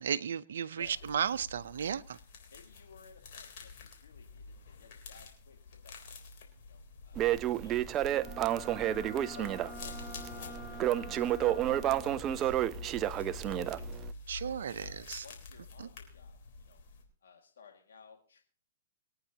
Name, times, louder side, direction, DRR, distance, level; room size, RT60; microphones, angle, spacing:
voice 1, 0.0-2.2 14.3-15.2 15.8-15.9, right 8 dB, 75° right, 0.7 m, -34 dB
sound 1, 0.8-17.0, left 4 dB, 55° left, 3.5 m, -48 dB
voice 2, 2.5-6.0 6.7-7.3 7.6-8.4 9.3-9.5 9.8-10.0 10.3-13.8 14.4-16.4 16.7-16.8 17.2-18.4, left 6 dB, 80° left, 2.1 m, -57 dB
Crackle, 7.1-14.1, right 12 dB, 25° right, 0.5 m, -31 dB
Wind instrument woodwind instrument, 8.1-12.1, left 4 dB, 20° left, 3.7 m, -48 dB
23.5 x 9.2 x 2.9 m
hypercardioid pair, 135°, 0 cm